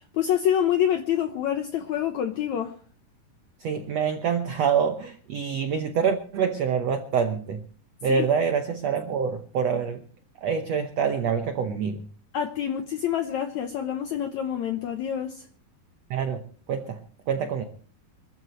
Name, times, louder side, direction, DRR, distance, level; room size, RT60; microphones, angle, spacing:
voice 1, 0.1-2.7 8.1-8.3 12.3-15.4, left 9 dB, 75° left, 1.7 m, -26 dB
voice 2, 3.6-7.6 8.0-10.0 10.4-12.0 16.1-16.4 16.7-17.0 17.3-17.6, right 6 dB, 80° right, 1.5 m, -26 dB
25.5 x 14.0 x 3.2 m
omnidirectional pair, 4.5 m